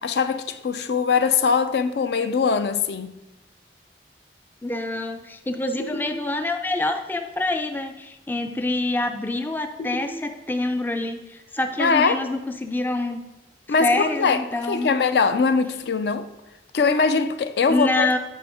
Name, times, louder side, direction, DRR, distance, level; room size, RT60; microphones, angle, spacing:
voice 1, 0.0-3.2 11.8-12.2 13.7-16.3 16.7-18.2, left 5 dB, 70° left, 0.4 m, -22 dB
voice 2, 4.6-13.2 13.8-14.9 17.7-18.2, left 2 dB, 10° left, 0.3 m, -26 dB
sound 1, 5.8-6.7 9.8-10.8 13.8-14.8, left 1 dB, 45° left, 0.9 m, -37 dB
8.6 x 5.5 x 3.6 m
head